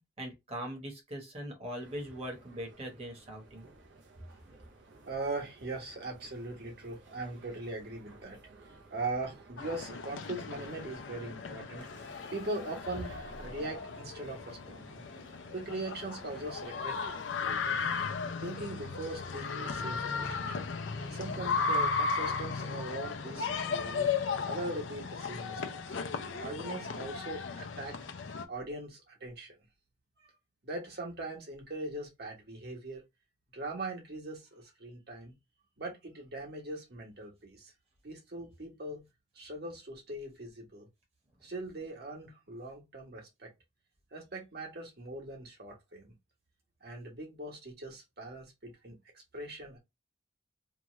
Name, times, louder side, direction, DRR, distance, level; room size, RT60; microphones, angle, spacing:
voice 1, 0.2-3.7, equal, 35° right, 1.0 m, -41 dB
sound 1, 1.8-21.5, right 2 dB, 80° right, 0.7 m, -57 dB
voice 2, 5.1-15.0 15.5-17.8 18.4-20.6 21.1-26.0 26.4-27.9 28.5-29.6 30.6-33.0 33.5-35.3 35.8-37.7 38.0-39.0 39.3-40.9 41.4-43.5 44.1-46.1 46.8-49.8, right 2 dB, 55° right, 1.2 m, -41 dB
sound 2, 9.6-28.4, left 5 dB, 85° left, 0.5 m, -36 dB
sound 3, 11.8-13.8, equal, 65° left, 0.9 m, -53 dB
2.9 x 2.4 x 3.0 m
head